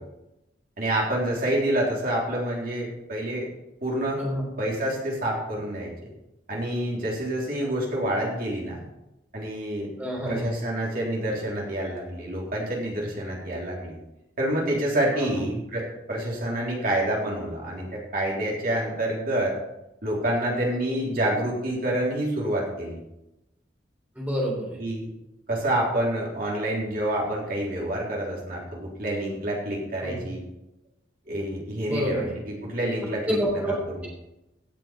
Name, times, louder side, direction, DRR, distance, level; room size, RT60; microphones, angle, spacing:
voice 1, 0.8-3.5 3.8-4.2 4.6-5.9 6.5-8.8 9.3-9.9 10.2-14.0 14.4-17.9 18.1-19.5 20.0-23.0 24.8-25.1 25.5-30.4 31.3-34.1, right 1 dB, 50° right, -4 dB, 3.6 m, -27 dB
voice 2, 10.0-10.5 15.1-15.4 24.2-24.8 30.0-30.1 31.9-32.3 33.3-33.7, equal, 10° right, -3 dB, 3.8 m, -28 dB
17.0 x 6.2 x 5.1 m, 0.90 s
head